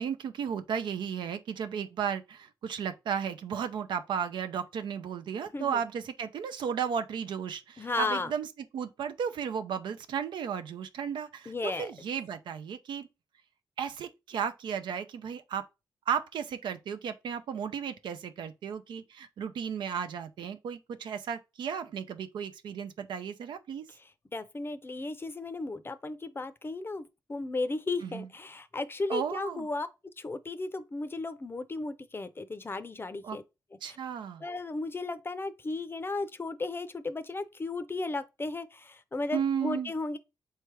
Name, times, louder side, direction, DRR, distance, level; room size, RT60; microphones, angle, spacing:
voice 1, 0.0-8.5 8.7-13.1 13.8-15.6 16.1-23.9 28.0-28.3 29.1-29.7 33.2-33.4 33.8-34.4 39.3-39.9, right 7 dB, 85° right, 0.4 m, -34 dB
voice 2, 7.8-8.3 11.5-11.9 24.0-29.9 30.2-33.4 33.9-34.0 34.4-40.2, left 3 dB, 30° left, 0.5 m, -35 dB
3.3 x 3.2 x 4.6 m
cardioid pair, 75°, 8 cm